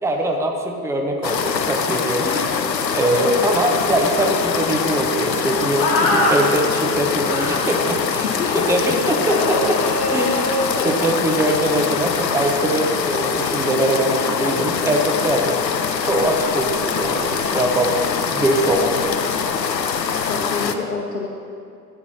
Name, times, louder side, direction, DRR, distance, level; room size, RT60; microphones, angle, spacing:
voice 1, 0.0-2.4 2.9-8.2 8.5-9.8 10.1-10.4 10.8-15.6 16.0-19.2, right 1 dB, 5° right, 3 dB, 0.9 m, -22 dB
sound 1, 1.2-20.7, left 6 dB, 90° left, 0.6 m, -23 dB
voice 2, 2.2-2.6 3.2-3.5 7.0-7.3 8.2-9.1 10.7-10.9 17.9-18.4 18.7-19.2 20.2-21.3, left 5 dB, 65° left, 0 dB, 1.0 m, -29 dB
sound 2, 5.8-6.4 7.2-7.7 9.2-11.6, left 1 dB, 25° left, 2.1 m, -23 dB
14.0 x 9.1 x 2.8 m, 2.5 s
figure-of-eight pair, 80°, 49 cm